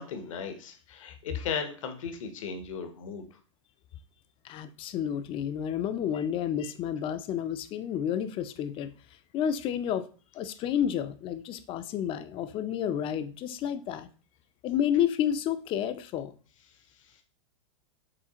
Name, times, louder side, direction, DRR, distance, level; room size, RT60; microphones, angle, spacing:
voice 1, 0.0-3.2 17.0-17.2, left 6 dB, 70° left, 0.8 m, -36 dB
voice 2, 4.4-8.9 9.3-10.1 10.3-14.1 14.6-16.3, left 9 dB, 30° left, 0.4 m, -30 dB
5.0 x 3.2 x 2.9 m
hypercardioid pair, 110°, 17 cm